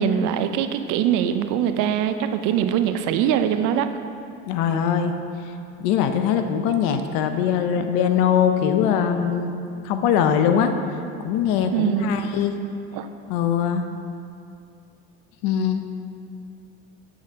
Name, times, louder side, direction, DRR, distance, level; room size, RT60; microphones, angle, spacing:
voice 1, 0.0-3.9 11.7-12.2 12.9-13.1, right 9 dB, 70° right, 9 dB, 0.6 m, -22 dB
voice 2, 4.5-5.1 5.8-9.5 9.8-10.7 11.2-12.5 13.3-13.9 15.4-15.8, left 8 dB, 75° left, 7 dB, 0.7 m, -21 dB
7.6 x 4.1 x 6.2 m, 2.5 s
supercardioid pair, 95°, 32 cm